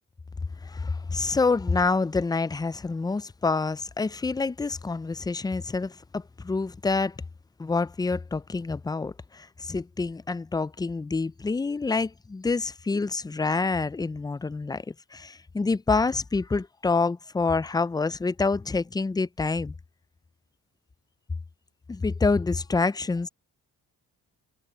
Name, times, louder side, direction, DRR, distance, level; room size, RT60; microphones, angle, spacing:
voice 1, 0.6-7.2 7.6-19.7 21.9-23.3, left 4 dB, 10° left, 0.4 m, -27 dB
cardioid pair, 85°, 37 cm